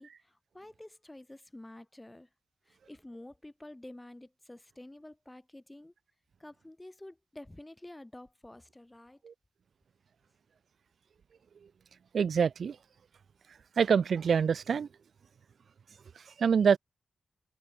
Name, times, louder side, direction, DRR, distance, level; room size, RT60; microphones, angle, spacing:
voice 1, 0.0-2.3 2.7-5.9 6.4-9.2, left 1 dB, 15° left, 7.8 m, -49 dB
voice 2, 12.1-12.8 13.8-14.9 16.2-16.8, right 6 dB, 70° right, 0.5 m, -26 dB
wide cardioid pair, 105°, 0 cm